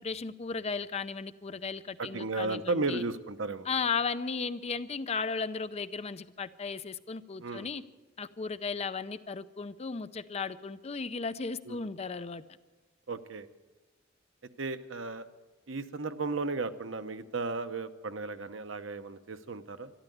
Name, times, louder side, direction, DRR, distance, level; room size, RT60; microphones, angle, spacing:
voice 1, 0.0-3.0 3.6-7.8 8.2-12.4, left 5 dB, 35° left, 13 dB, 0.5 m, -35 dB
voice 2, 2.0-3.7 7.4-7.7 11.7-11.8 13.1-13.5 14.6-15.3 15.7-19.9, right 3 dB, 75° right, 10 dB, 0.9 m, -34 dB
13.0 x 11.5 x 9.3 m, 1.2 s
head